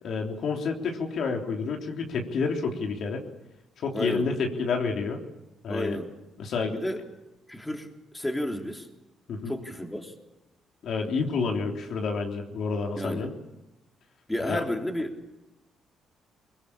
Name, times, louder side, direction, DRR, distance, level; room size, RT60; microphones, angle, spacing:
voice 1, 0.0-3.2 3.8-5.2 5.6-6.0 6.4-6.8 9.3-9.5 10.8-13.3 14.4-14.6, left 4 dB, 65° left, 2 dB, 3.6 m, -29 dB
voice 2, 3.9-4.3 5.7-6.1 6.7-7.0 7.5-8.9 9.5-10.1 13.0-13.3 14.3-15.5, left 1 dB, 10° left, 3 dB, 3.5 m, -32 dB
22.5 x 21.0 x 8.8 m, 0.93 s
cardioid pair, 90°, 0 cm